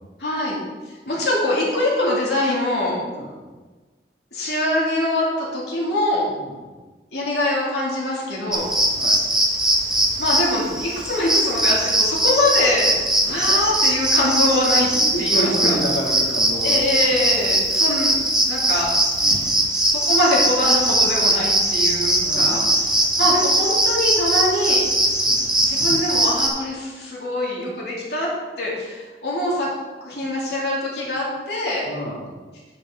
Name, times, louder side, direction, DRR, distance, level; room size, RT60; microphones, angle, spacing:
voice 1, 0.2-0.6 1.1-2.9 4.3-6.2 7.1-8.7 10.2-14.9 15.2-15.8 16.6-18.1 18.5-18.9 19.2-19.5 19.8-24.8 25.6-28.3 28.6-29.7 30.0-31.8, left 1 dB, 70° left, -5 dB, 2.9 m, -23 dB
sound 1, 8.5-26.5, right 1 dB, 5° right, 1.1 m, -20 dB
voice 2, 13.3-13.6 14.7-17.1 19.2-19.5 22.2-22.7 23.2-23.3 25.2-25.4 31.8-32.2, equal, 90° left, -4 dB, 2.9 m, -30 dB
9.1 x 8.2 x 3.9 m, 1.3 s
head